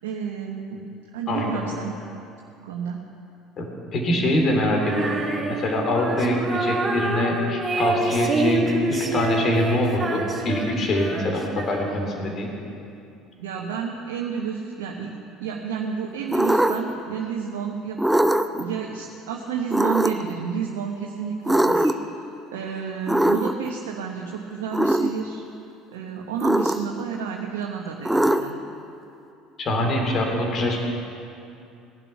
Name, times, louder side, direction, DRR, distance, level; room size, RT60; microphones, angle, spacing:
voice 1, 0.0-0.9 1.1-1.9 2.6-3.0 13.4-15.1 15.4-18.0 18.6-21.9 22.5-25.4 25.9-28.6, right 7 dB, 75° right, 0 dB, 1.1 m, -30 dB
voice 2, 3.9-12.5 29.6-30.8, left 1 dB, 45° left, 1 dB, 3.4 m, -24 dB
Female singing, 4.8-12.2, right 3 dB, 25° right, 1.9 m, -27 dB
sound 1, 16.3-17.0 18.0-18.6 19.7-20.3 21.5-22.1 23.1-23.7 24.7-25.1 26.4-27.0 28.1-28.7, right 1 dB, 5° right, 0.7 m, -21 dB
17.0 x 11.0 x 5.9 m, 2.6 s
hypercardioid pair, 65°, 0 cm